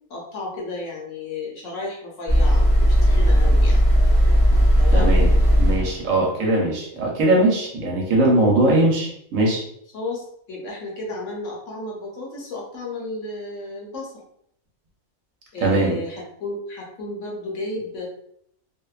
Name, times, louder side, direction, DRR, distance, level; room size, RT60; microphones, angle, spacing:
voice 1, 0.1-3.8 4.8-5.2 9.9-14.1 15.5-18.1, left 2 dB, 65° left, -2 dB, 1.0 m, -33 dB
sound 1, 2.3-6.0, equal, 25° left, 0.6 m, -16 dB
voice 2, 4.9-5.3 5.6-9.6 15.6-16.0, right 1 dB, 70° right, -2 dB, 1.0 m, -20 dB
2.7 x 2.1 x 2.3 m, 0.71 s
omnidirectional pair, 1.5 m